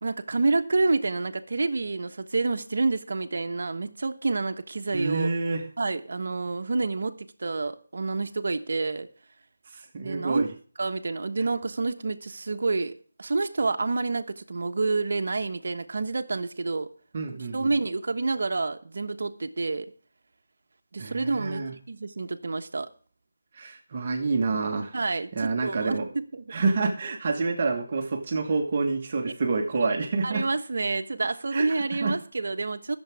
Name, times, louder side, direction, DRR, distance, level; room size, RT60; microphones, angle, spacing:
voice 1, 0.0-5.3 5.8-9.1 10.0-10.4 10.8-16.9 17.5-19.9 20.9-22.9 24.9-26.5 30.2-33.0, right 3 dB, 60° right, 1.3 m, -28 dB
voice 2, 4.9-5.6 9.7-10.5 17.1-17.8 21.0-21.7 23.5-24.9 25.3-26.0 26.5-30.4 31.5-32.1, right 3 dB, 35° right, 1.6 m, -28 dB
22.0 x 7.3 x 3.6 m
figure-of-eight pair, 170°, 0 cm